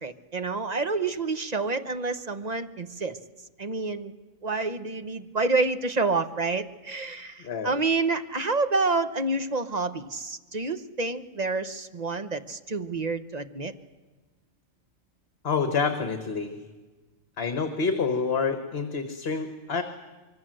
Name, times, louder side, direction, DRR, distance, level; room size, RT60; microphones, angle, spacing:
voice 1, 0.0-3.2 3.6-4.1 4.4-13.7, right 3 dB, 35° right, 10 dB, 1.0 m, -28 dB
voice 2, 7.4-7.7 15.4-16.6 17.4-19.8, left 5 dB, 50° left, 8 dB, 1.6 m, -27 dB
25.5 x 23.5 x 7.8 m, 1.3 s
omnidirectional pair, 1.4 m